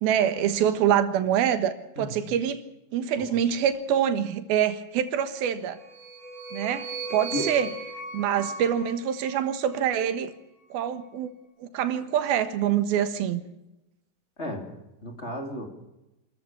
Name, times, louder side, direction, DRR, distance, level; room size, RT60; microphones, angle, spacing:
voice 1, 0.0-2.6 2.9-5.8 6.5-7.7 8.1-10.3 10.7-11.3 11.6-13.4, right 9 dB, 85° right, 10 dB, 3.3 m, -25 dB
voice 2, 1.9-2.3 3.2-3.4 7.3-7.5 8.4-8.5 14.4-14.7 15.0-15.7, left 1 dB, 20° left, 3 dB, 3.1 m, -34 dB
sound 1, 5.7-10.0, right 3 dB, 35° right, 5.3 m, -38 dB
28.0 x 14.0 x 7.1 m, 0.93 s
omnidirectional pair, 4.2 m